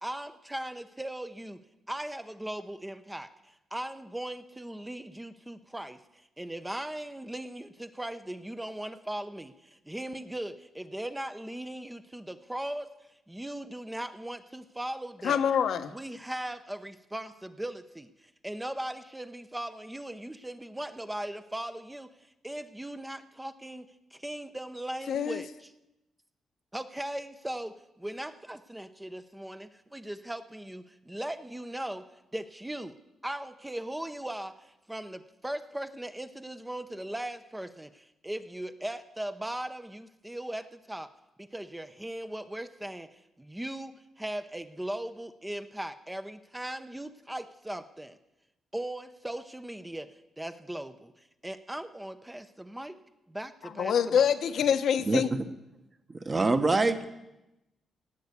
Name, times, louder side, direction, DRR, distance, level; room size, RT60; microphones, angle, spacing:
voice 1, 0.0-1.6 1.9-12.9 13.3-15.5 15.9-25.7 26.7-32.0 32.3-33.0 33.2-41.1 41.4-48.2 48.7-53.0 53.3-54.4, right 1 dB, 10° right, 0.7 m, -39 dB
voice 2, 15.2-15.9 25.1-25.4 53.6-55.3, left 8 dB, 70° left, 0.9 m, -26 dB
voice 3, 56.1-57.1, right 3 dB, 25° right, 1.1 m, -25 dB
17.0 x 8.3 x 8.2 m
cardioid pair, 125°, 0 cm